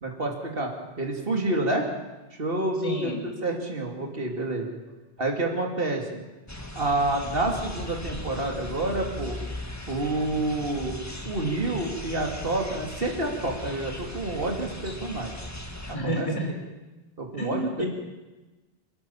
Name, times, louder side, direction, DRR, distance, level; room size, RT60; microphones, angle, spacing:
voice 1, 0.0-1.9 2.3-3.1 3.4-4.7 5.2-6.2 6.7-9.4 9.9-11.0 11.2-15.4 16.0-16.5 17.2-17.8, right 2 dB, 65° right, 1 dB, 3.1 m, -28 dB
voice 2, 2.8-3.2 15.9-16.5 17.4-17.9, right 1 dB, 30° left, 1 dB, 4.0 m, -29 dB
sound 1, 6.5-16.0, left 1 dB, 15° left, 1.8 m, -38 dB
28.0 x 13.5 x 7.2 m, 1.1 s
omnidirectional pair, 1.0 m